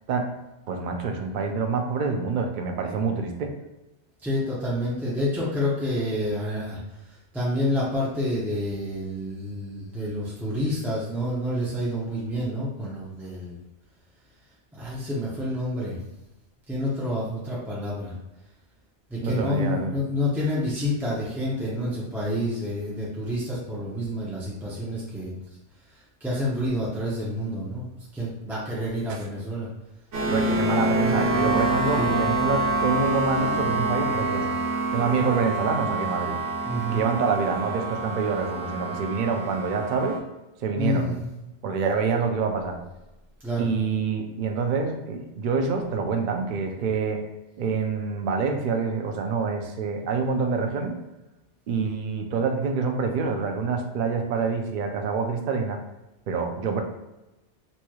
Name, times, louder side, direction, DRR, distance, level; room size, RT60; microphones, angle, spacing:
voice 1, 0.7-3.5 19.2-19.9 29.1-29.3 30.3-34.6 34.9-36.4 36.9-40.2 40.6-41.1 41.6-42.8 43.6-47.2 47.6-50.9 51.7-55.8 56.3-56.8, right 5 dB, 60° right, 4 dB, 0.5 m, -26 dB
voice 2, 4.2-6.8 7.3-13.6 14.7-16.0 16.7-18.1 19.1-25.3 26.2-27.9 28.1-29.7 31.9-32.3 36.7-37.0 40.8-41.3 43.4-43.8, left 1 dB, 5° right, -7 dB, 0.4 m, -28 dB
sound 1, 30.1-40.2, right 2 dB, 80° right, 1.2 m, -26 dB
4.1 x 3.0 x 2.3 m, 0.98 s
omnidirectional pair, 1.2 m